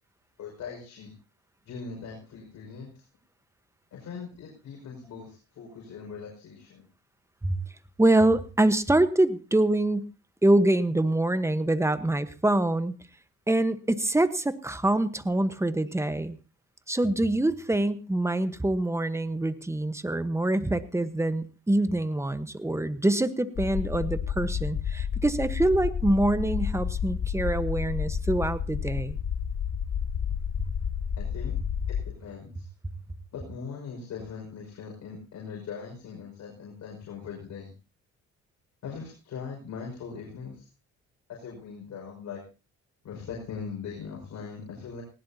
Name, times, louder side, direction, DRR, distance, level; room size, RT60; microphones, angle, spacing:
voice 1, 0.4-1.1 1.6-3.0 3.9-6.9 31.2-31.6 31.9-32.7 33.3-37.7 38.8-40.7 41.3-42.4 43.0-45.0, left 6 dB, 70° left, -1 dB, 5.5 m, -40 dB
voice 2, 8.0-10.1 10.4-12.9 13.5-16.4 16.9-29.2, right 1 dB, 10° right, 12 dB, 1.1 m, -25 dB
sound 1, 23.6-32.1, left 7 dB, 45° left, 1.1 m, -30 dB
19.0 x 17.0 x 2.8 m, 0.33 s
cardioid pair, 90°, 30 cm